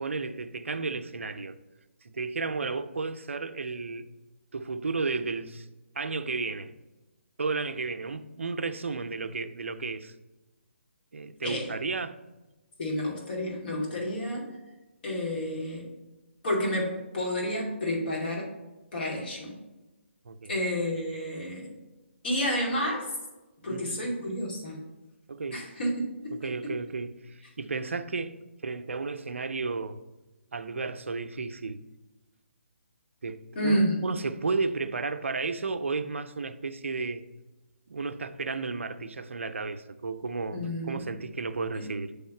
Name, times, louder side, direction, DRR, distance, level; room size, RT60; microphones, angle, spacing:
voice 1, 0.0-1.5 2.0-4.1 4.5-5.7 5.9-6.7 7.4-10.1 11.1-12.2 14.0-14.1 20.2-20.5 23.7-24.0 25.3-25.6 26.3-30.0 30.5-31.9 33.2-33.8 34.0-37.2 37.9-42.1, right 4 dB, 75° right, 0.6 m, -33 dB
voice 2, 11.4-11.7 12.8-14.6 15.0-15.9 16.4-18.5 18.9-19.5 20.5-21.7 22.2-23.1 23.6-24.8 25.5-26.7 33.5-34.0 40.5-41.1 41.7-41.9, equal, 50° left, 2.5 m, -30 dB
7.1 x 3.6 x 5.7 m
hypercardioid pair, 150°, 7 cm